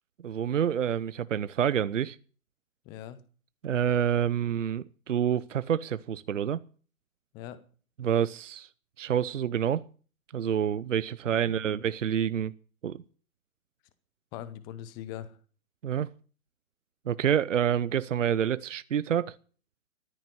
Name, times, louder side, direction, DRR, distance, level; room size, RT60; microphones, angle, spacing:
voice 1, 0.2-2.2 3.6-6.6 8.0-8.7 9.0-9.8 10.3-12.5 12.8-13.0 15.8-16.1 17.1-19.3, right 9 dB, 60° right, 0.9 m, -27 dB
voice 2, 2.8-3.2 7.3-7.6 11.3-11.7 14.3-15.4, left 11 dB, 10° left, 0.6 m, -41 dB
13.5 x 10.0 x 7.9 m
figure-of-eight pair, 135°, 42 cm